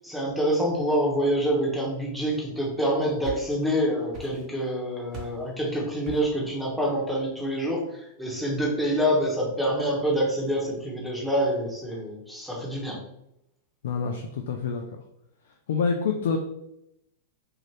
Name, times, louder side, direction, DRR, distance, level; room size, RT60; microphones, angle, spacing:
voice 1, 0.0-13.0, equal, ahead, -3 dB, 1.1 m, -26 dB
sound 1, 2.8-3.8 4.1-4.7 5.1-5.5 6.0-6.4, right 2 dB, 40° right, 1.0 m, -41 dB
voice 2, 13.8-15.0 15.7-16.4, left 5 dB, 65° left, 3 dB, 0.3 m, -27 dB
2.7 x 2.5 x 3.2 m, 0.81 s
hypercardioid pair, 105°, 0 cm